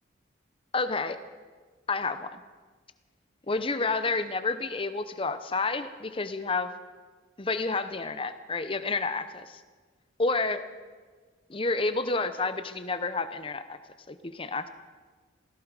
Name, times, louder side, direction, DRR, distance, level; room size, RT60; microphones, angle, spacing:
voice 1, 0.7-1.2 1.9-2.4 3.5-6.7 7.4-9.6 10.2-10.6 11.5-13.8 14.1-14.7, left 3 dB, 25° left, 11 dB, 0.8 m, -30 dB
17.0 x 15.5 x 4.9 m, 1.4 s
head